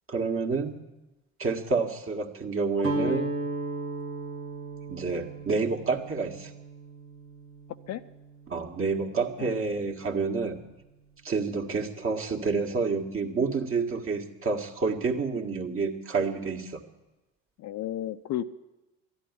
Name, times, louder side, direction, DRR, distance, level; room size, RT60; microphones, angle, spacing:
voice 1, 0.1-0.8 1.4-3.3 4.9-6.5 8.5-10.6 11.2-16.8, right 4 dB, 35° right, 3 dB, 1.8 m, -29 dB
Guitar, 2.8-8.8, right 2 dB, 80° right, 2.4 m, -35 dB
voice 2, 17.6-18.4, left 12 dB, 45° left, 11 dB, 0.6 m, -32 dB
12.5 x 11.0 x 9.8 m, 1.1 s
hypercardioid pair, 65°, 38 cm